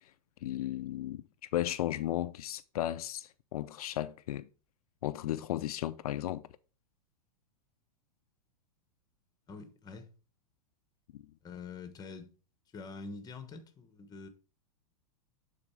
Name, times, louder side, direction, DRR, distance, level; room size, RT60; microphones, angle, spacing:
voice 1, 0.4-1.2 1.5-4.5 5.0-6.4 11.1-11.2, left 13 dB, 75° left, 0.5 m, -35 dB
voice 2, 9.5-10.1 11.4-12.3 12.7-14.3, left 4 dB, 20° left, 1.2 m, -45 dB
8.8 x 4.2 x 4.6 m
hypercardioid pair, 120°, 19 cm